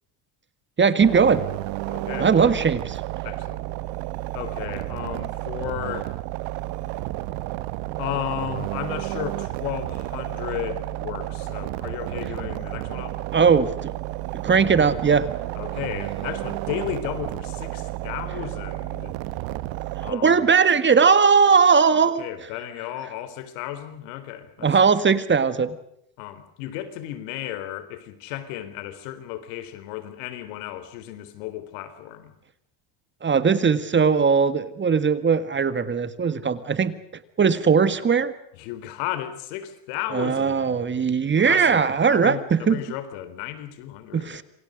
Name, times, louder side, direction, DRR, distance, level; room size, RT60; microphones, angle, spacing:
voice 1, 0.8-1.4 2.2-3.0 13.3-14.0 14.4-15.3 20.0-22.2 24.6-25.7 33.2-36.9 37.4-38.3 40.1-42.8 44.1-44.4, right 6 dB, 25° right, 13 dB, 1.7 m, -19 dB
sound 1, 1.0-20.1, right 16 dB, 85° right, 1.5 m, -31 dB
voice 2, 1.8-2.5 3.2-3.6 4.3-6.2 8.0-13.3 15.6-19.2 20.0-20.5 22.0-24.7 26.2-32.3 38.5-40.8 41.2-44.4, left 12 dB, 85° left, 12 dB, 3.9 m, -34 dB
28.0 x 26.0 x 5.1 m, 0.75 s
cardioid pair, 125°, 47 cm